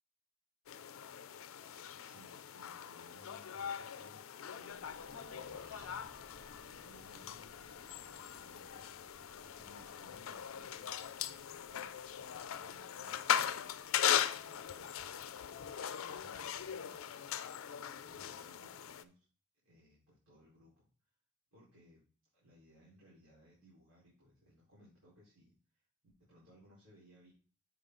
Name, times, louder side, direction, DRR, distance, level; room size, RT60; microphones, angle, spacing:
sound 1, 0.7-19.0, left 9 dB, 70° left, 0.4 m, -40 dB
voice 1, 2.0-5.8 6.6-8.9 9.6-13.8 14.3-15.1 15.4-17.2 18.0-19.3 19.6-20.9 21.5-22.0 22.3-25.8 26.2-27.3, equal, 75° right, -9 dB, 4.1 m, -63 dB
Accelerating revving vroom, 4.6-15.5, equal, 50° right, 2.1 m, -64 dB
7.7 x 5.5 x 3.8 m, 0.38 s
head